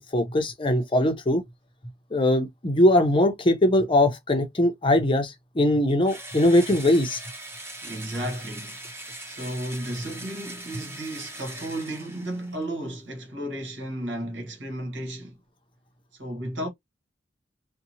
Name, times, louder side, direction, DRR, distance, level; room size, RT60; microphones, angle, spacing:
voice 1, 0.1-1.4 2.1-7.2, left 1 dB, 30° left, 0.6 m, -21 dB
Engine / Drill, 6.1-12.6, right 1 dB, 15° right, 0.7 m, -41 dB
voice 2, 7.8-8.8 9.3-15.4 16.2-16.7, right 1 dB, 75° right, 1.2 m, -33 dB
2.8 x 2.2 x 2.7 m
head